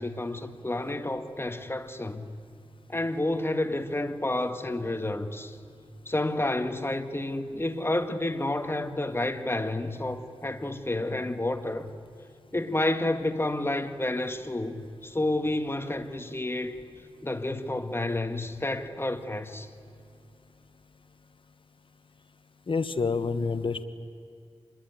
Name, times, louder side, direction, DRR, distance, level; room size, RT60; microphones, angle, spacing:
voice 1, 0.0-2.3 2.9-5.6 6.1-11.9 12.5-16.8 17.2-19.7, left 1 dB, 25° left, 1.9 m, -30 dB
voice 2, 22.7-23.8, left 4 dB, 55° left, 1.3 m, -28 dB
27.0 x 21.5 x 9.3 m
cardioid pair, 60°, 10 cm